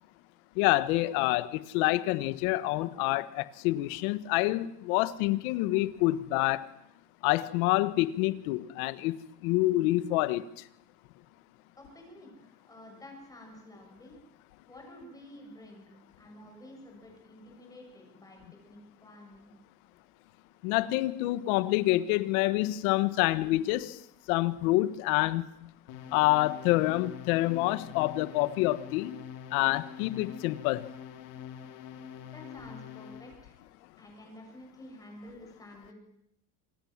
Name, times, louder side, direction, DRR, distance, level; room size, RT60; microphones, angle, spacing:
voice 1, 0.6-6.7 7.2-10.4 20.6-24.0 24.3-25.5 26.1-29.1 29.5-30.9, left 18 dB, 75° left, 1.6 m, -27 dB
voice 2, 11.8-14.2 14.7-19.5 31.9-33.6 34.0-35.9, left 1 dB, 10° left, 7.4 m, -50 dB
sound 1, 25.9-33.4, left 9 dB, 50° left, 3.8 m, -45 dB
28.0 x 27.0 x 7.5 m
cardioid pair, 180°, 43 cm